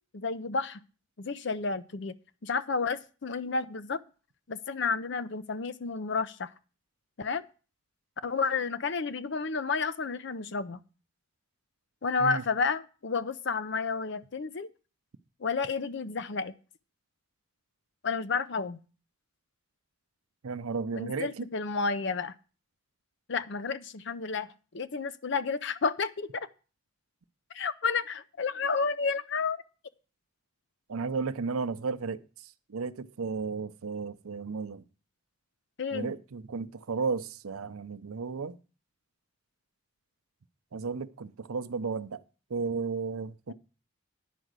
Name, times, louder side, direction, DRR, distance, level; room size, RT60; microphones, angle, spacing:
voice 1, 0.1-0.8 1.2-2.1 2.4-4.0 4.5-6.5 7.2-7.4 8.2-10.8 12.0-14.7 15.4-16.5 18.0-18.8 21.0-22.3 23.3-24.5 24.7-26.5 27.5-29.6 35.8-36.1 43.5-43.6, left 4 dB, 55° left, 0.6 m, -31 dB
voice 2, 20.4-21.5 30.9-32.2 32.7-34.8 35.9-38.6 40.7-42.2 42.5-43.5, right 4 dB, 85° right, 0.6 m, -33 dB
10.0 x 5.0 x 7.9 m
head